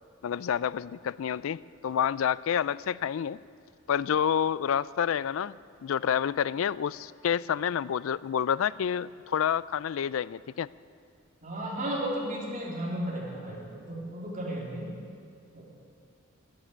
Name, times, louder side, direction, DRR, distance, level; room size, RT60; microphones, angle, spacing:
voice 1, 0.2-3.4 3.9-5.6 5.8-10.7, left 8 dB, 65° left, 19 dB, 0.3 m, -28 dB
voice 2, 11.4-14.9 15.5-15.6, right 1 dB, 40° right, -4 dB, 3.6 m, -34 dB
12.5 x 12.0 x 9.8 m, 2.3 s
head